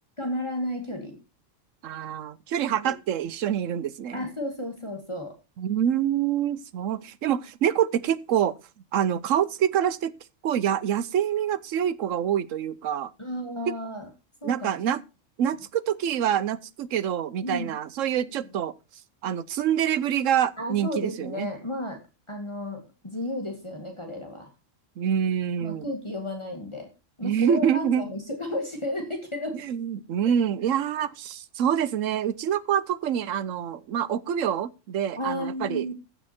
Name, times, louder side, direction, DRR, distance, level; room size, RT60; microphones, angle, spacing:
voice 1, 0.2-1.2 2.7-2.9 4.1-5.3 13.2-14.1 14.4-14.8 17.4-17.7 18.4-18.6 20.6-22.0 22.3-24.5 25.6-26.9 27.2-29.6 35.2-35.9, left 1 dB, 20° left, 2.2 m, -33 dB
voice 2, 1.8-4.2 5.6-8.5 8.9-10.1 10.4-13.1 13.7-13.8 14.4-15.0 15.4-18.7 19.2-21.5 25.0-25.9 27.2-28.0 29.6-35.9, right 9 dB, 75° right, 1.1 m, -26 dB
15.0 x 6.5 x 4.4 m
omnidirectional pair, 1.3 m